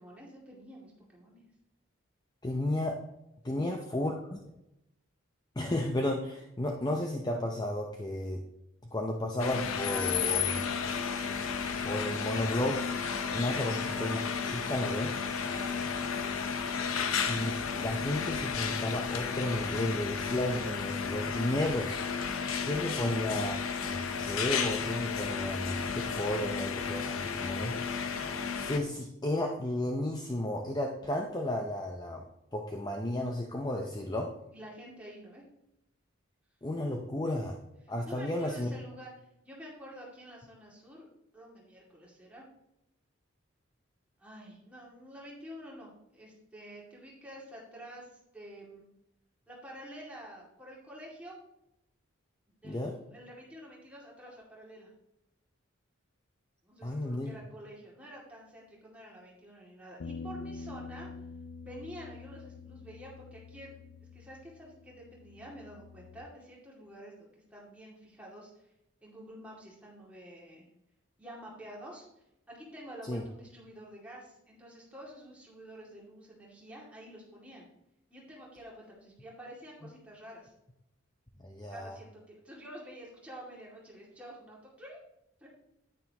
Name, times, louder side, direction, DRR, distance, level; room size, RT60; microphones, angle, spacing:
voice 1, 0.0-1.4 3.4-3.8 13.5-13.7 15.4-15.7 22.8-23.2 34.5-35.4 38.0-41.1 41.3-42.4 44.2-48.9 49.5-51.4 52.6-54.9 56.6-61.1 61.6-63.8 64.1-68.7 69.0-70.7 71.2-72.1 72.5-77.7 78.1-80.5 81.7-85.0 85.4-85.5, equal, 5° right, -4 dB, 2.3 m, -49 dB
voice 2, 2.4-3.0 3.4-4.2 5.6-8.4 8.8-10.6 11.8-12.8 13.3-15.1 17.3-22.0 22.6-23.5 23.9-28.1 28.6-32.2 32.5-34.3 36.6-37.6 37.9-38.7 52.6-52.9 56.8-57.3 73.1-73.2 81.4-82.0, left 1 dB, 20° left, 2 dB, 0.6 m, -33 dB
sound 1, 9.4-28.8, left 6 dB, 85° left, 0.8 m, -33 dB
sound 2, 60.0-66.3, left 4 dB, 70° left, 0.4 m, -46 dB
9.6 x 9.3 x 2.9 m, 0.85 s
head